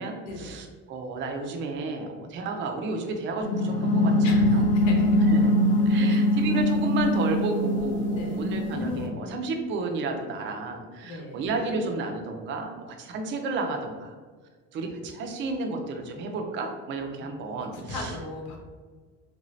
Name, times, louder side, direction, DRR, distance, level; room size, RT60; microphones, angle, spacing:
voice 1, 0.0-4.1 4.5-4.6 5.3-5.6 5.9-14.1 14.7-18.1, right 3 dB, 40° right, 3 dB, 0.4 m, -32 dB
sound 1, 3.4-9.1, left 1 dB, 40° left, 0.5 m, -23 dB
voice 2, 4.2-5.2 6.1-6.2 8.1-8.4 11.0-11.4 17.2-17.3 17.7-18.6, left 2 dB, 80° left, 0 dB, 1.0 m, -37 dB
3.2 x 2.6 x 3.1 m, 1.5 s
cardioid pair, 165°, 30 cm